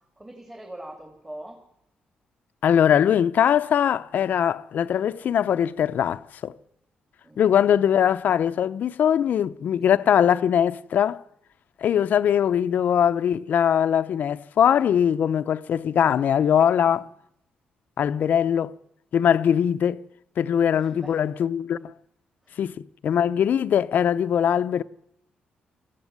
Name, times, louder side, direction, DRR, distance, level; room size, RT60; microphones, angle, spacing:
voice 1, 0.0-1.6 7.2-7.4 16.9-17.1 20.7-21.2 22.4-22.6, right 1 dB, 15° right, 3.0 m, -42 dB
voice 2, 2.6-6.5 7.4-11.2 11.8-17.1 18.0-18.7 19.1-20.0 20.4-21.8 22.6-22.7 23.0-24.8, left 9 dB, 65° left, 0.7 m, -21 dB
20.0 x 14.5 x 9.5 m
cardioid pair, 105°, 3 cm